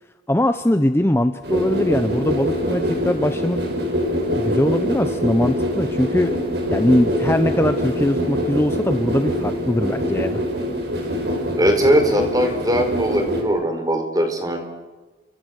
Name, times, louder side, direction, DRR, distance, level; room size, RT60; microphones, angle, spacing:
voice 1, 0.3-3.6 4.4-6.4 6.7-10.4, left 1 dB, 15° left, 9 dB, 0.7 m, -21 dB
sound 1, 1.4-13.4, equal, 70° right, 6.2 m, -24 dB
voice 2, 11.6-14.6, right 1 dB, 20° right, 5 dB, 4.3 m, -20 dB
29.5 x 24.5 x 6.4 m, 1.2 s
head